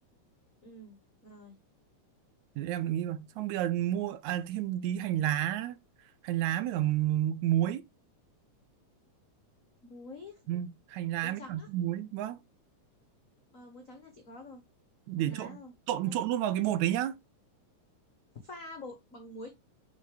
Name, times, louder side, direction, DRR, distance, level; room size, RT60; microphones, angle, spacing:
voice 1, 0.6-1.6 9.8-10.4 11.2-11.7 13.5-14.6 15.2-15.7 16.0-16.1 18.4-19.5, left 2 dB, 75° left, 0.7 m, -47 dB
voice 2, 2.6-5.8 6.2-7.8 10.5-12.4 15.1-15.6 15.9-17.2, right 12 dB, 85° right, 2.0 m, -30 dB
6.5 x 4.1 x 4.7 m
omnidirectional pair, 3.4 m